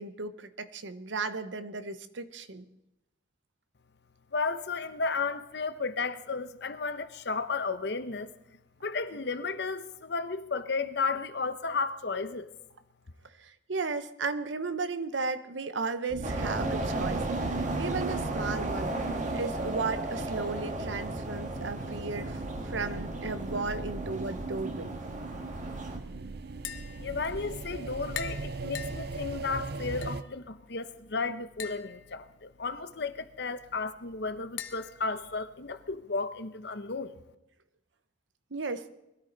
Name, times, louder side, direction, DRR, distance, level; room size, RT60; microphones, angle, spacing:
voice 1, 0.0-2.7 13.4-24.9 38.5-38.9, right 4 dB, 85° right, 0.9 m, -35 dB
voice 2, 4.3-8.3 8.8-12.5 27.0-37.1, left 4 dB, 65° left, 0.9 m, -33 dB
sound 1, 16.1-30.2, right 3 dB, 60° right, 0.6 m, -39 dB
sound 2, 16.2-26.0, right 1 dB, 45° right, 1.6 m, -35 dB
Tap, 26.5-36.0, left 9 dB, 90° left, 1.0 m, -46 dB
21.5 x 13.0 x 4.0 m
head